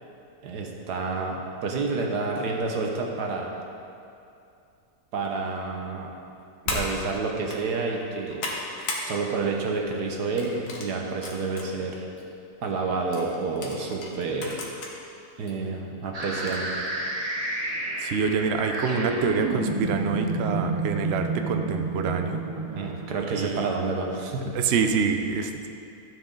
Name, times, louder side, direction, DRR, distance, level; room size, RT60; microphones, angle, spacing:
voice 1, 0.4-3.5 5.1-6.1 6.7-8.4 9.1-12.1 12.6-14.6 15.4-16.7 22.8-24.6, right 4 dB, 85° right, 1 dB, 1.7 m, -29 dB
sound 1, 6.6-6.9 7.4-7.6 8.0-9.1 9.4-9.7 10.4-11.7 12.2-12.3 13.1-14.9 15.5-15.6 16.4-16.7, left 3 dB, 75° left, 1.8 m, -34 dB
sound 2, 16.1-24.0, right 2 dB, 30° right, 0.8 m, -30 dB
voice 2, 18.0-22.4 23.3-23.7 24.5-25.7, right 6 dB, 60° right, 6 dB, 0.7 m, -26 dB
12.5 x 7.7 x 3.9 m, 2.6 s
omnidirectional pair, 1.7 m